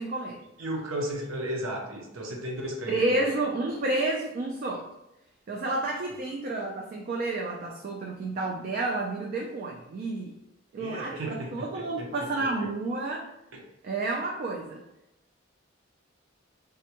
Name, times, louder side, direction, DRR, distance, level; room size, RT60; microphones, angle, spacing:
voice 1, 0.0-0.4 2.9-4.9 5.5-10.3 10.7-13.3 13.8-14.8, right 2 dB, 45° right, 1 dB, 0.3 m, -30 dB
voice 2, 0.6-3.2 10.8-12.1 12.4-12.5 13.5-13.6, right 1 dB, 85° right, 0 dB, 0.6 m, -34 dB
3.4 x 2.1 x 2.8 m, 0.87 s
head